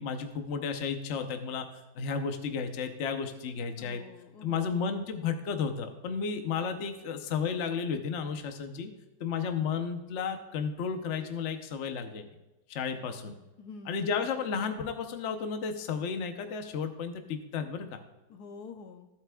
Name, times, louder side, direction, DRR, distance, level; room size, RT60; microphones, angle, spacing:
voice 1, 0.0-1.7 1.9-4.0 4.4-8.9 9.2-12.3 12.7-13.3 13.9-18.0, left 6 dB, 50° left, 6 dB, 1.0 m, -33 dB
voice 2, 3.8-4.8 13.6-14.1 18.3-19.1, left 4 dB, 70° left, 6 dB, 1.2 m, -47 dB
16.0 x 7.8 x 2.3 m, 1.0 s
omnidirectional pair, 1.9 m